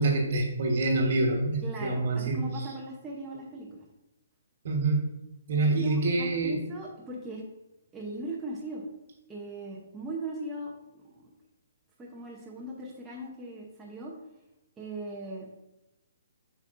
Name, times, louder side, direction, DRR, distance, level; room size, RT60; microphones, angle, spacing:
voice 1, 0.0-2.5 4.6-5.1 5.5-6.6, right 2 dB, 50° right, 1 dB, 1.4 m, -26 dB
voice 2, 1.6-3.8 5.8-7.4 7.9-8.8 9.3-11.3 12.0-14.1 14.8-15.5, right 2 dB, 10° right, -5 dB, 0.8 m, -39 dB
7.3 x 5.3 x 2.6 m, 0.97 s
hypercardioid pair, 165°, 0 cm